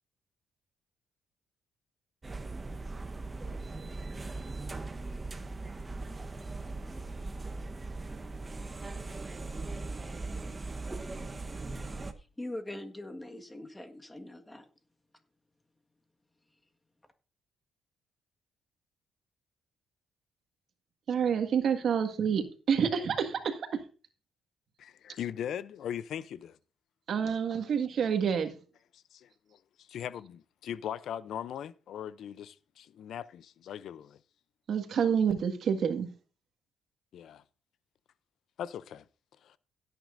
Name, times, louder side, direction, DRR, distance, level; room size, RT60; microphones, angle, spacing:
sound 1, 2.2-12.1, right 3 dB, 25° right, 1.1 m, -39 dB
voice 1, 12.2-14.7, left 1 dB, 15° left, 1.6 m, -42 dB
voice 2, 21.1-23.8 27.1-28.6 34.7-36.1, right 7 dB, 60° right, 1.8 m, -28 dB
voice 3, 24.8-26.6 29.1-34.2 37.1-37.4 38.6-39.0 39.4-39.6, left 9 dB, 70° left, 0.5 m, -40 dB
16.5 x 9.3 x 2.6 m
cardioid pair, 90°, 0 cm